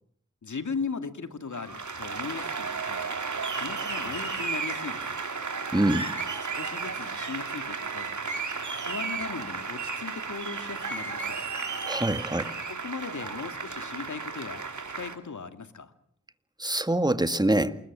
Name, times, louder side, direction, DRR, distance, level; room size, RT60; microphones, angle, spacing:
voice 1, 0.4-3.1 3.5-5.2 6.5-8.1 8.8-11.4 12.7-14.7 15.0-15.9, left 5 dB, 75° left, 2.5 m, -38 dB
Applause, 1.5-15.2, right 4 dB, 75° right, 3.1 m, -33 dB
voice 2, 5.7-6.1 11.8-12.5 16.6-17.8, right 1 dB, 15° right, 2.0 m, -25 dB
28.0 x 21.0 x 7.5 m
cardioid pair, 40°, 30 cm